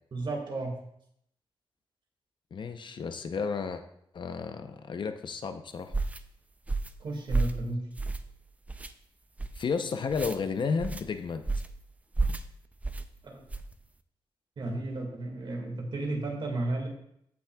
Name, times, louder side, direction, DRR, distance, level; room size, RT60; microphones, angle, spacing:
voice 1, 0.1-0.7 7.0-7.9 13.2-13.4 14.6-16.9, right 2 dB, 55° right, 1 dB, 1.7 m, -33 dB
voice 2, 2.5-3.8 4.1-5.9 9.5-11.4, left 5 dB, 55° left, 8 dB, 0.6 m, -32 dB
sound 1, 5.9-6.2 6.7-7.0 7.3-7.6 8.0-8.3 8.7-8.9 9.4-9.6 10.1-10.4 10.8-11.0 11.5-11.8 12.1-12.5 12.8-13.1 13.5-13.7, right 3 dB, 15° right, 0.3 m, -31 dB
15.5 x 6.0 x 2.2 m, 0.73 s
wide cardioid pair, 175°, 10 cm